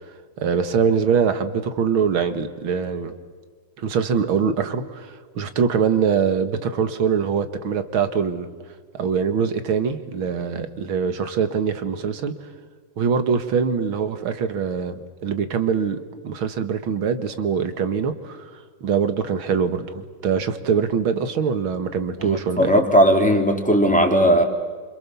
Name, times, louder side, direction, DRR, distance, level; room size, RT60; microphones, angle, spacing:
voice 1, 0.4-3.1 3.8-5.1 5.4-8.5 8.9-12.3 13.0-16.0 16.2-18.5 18.8-22.7, right 6 dB, 70° right, 9 dB, 2.4 m, -23 dB
voice 2, 22.2-24.4, equal, 5° left, 2 dB, 3.1 m, -17 dB
30.0 x 26.5 x 7.1 m, 1.5 s
omnidirectional pair, 2.4 m